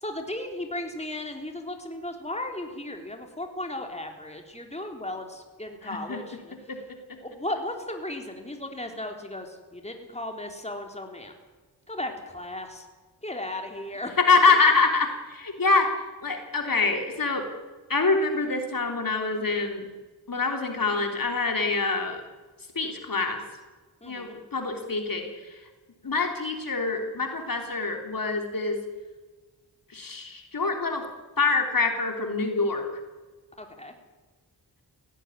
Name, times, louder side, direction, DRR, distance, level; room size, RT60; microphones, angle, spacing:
voice 1, 0.0-6.5 7.2-11.3 11.9-12.9 13.2-14.2 24.0-24.3 33.6-33.9, left 1 dB, 15° left, 4 dB, 3.7 m, -35 dB
voice 2, 5.8-6.2 6.7-6.8 14.2-15.9 16.2-17.5 17.9-19.9 20.3-22.2 22.8-23.4 24.0-25.6 26.0-28.8 29.9-31.0 31.4-32.8, left 4 dB, 55° left, 4 dB, 3.4 m, -25 dB
17.5 x 17.0 x 10.0 m, 1.3 s
cardioid pair, 55°, 40 cm